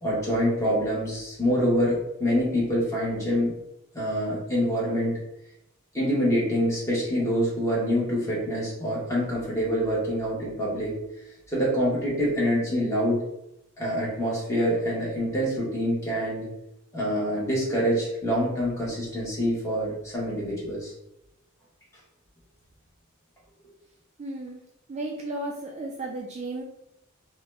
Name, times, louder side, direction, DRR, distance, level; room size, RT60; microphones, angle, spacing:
voice 1, 0.0-3.5 3.9-5.2 5.9-11.0 11.5-13.2 13.8-16.5 16.9-20.9, equal, 15° left, -6 dB, 1.0 m, -26 dB
voice 2, 24.2-24.6 24.9-26.6, right 2 dB, 30° right, -2 dB, 0.3 m, -34 dB
2.8 x 2.2 x 3.1 m, 0.81 s
head